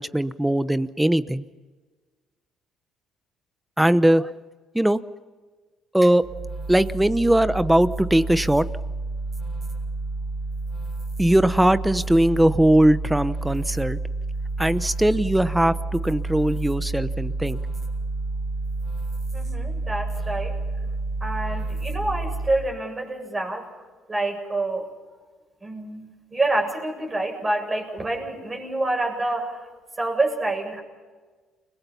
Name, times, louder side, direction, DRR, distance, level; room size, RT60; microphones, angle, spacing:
voice 1, 0.0-1.4 3.8-4.3 4.7-5.0 5.9-6.2 6.7-8.7 11.2-14.0 14.6-17.6, right 1 dB, 5° right, 14 dB, 1.0 m, -20 dB
sound 1, 6.2-22.8, right 3 dB, 45° right, 6.6 m, -30 dB
voice 2, 19.3-20.6 21.2-23.7 24.1-24.9 25.6-29.7 30.0-30.8, right 2 dB, 25° right, 2 dB, 7.9 m, -27 dB
30.0 x 21.0 x 5.7 m, 1.4 s
cardioid pair, 90°, 0 cm